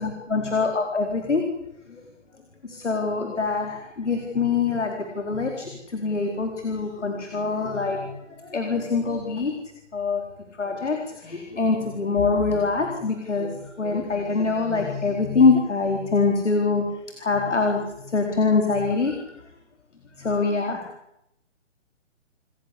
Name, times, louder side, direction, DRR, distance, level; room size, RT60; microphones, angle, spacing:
voice 1, 0.0-1.5 1.9-2.0 2.6-9.5 9.9-10.2 10.6-16.8 17.2-19.3 20.2-20.8, left 4 dB, 70° left, 3 dB, 4.5 m, -24 dB
29.5 x 16.0 x 8.5 m, 0.82 s
figure-of-eight pair, 140°, 37 cm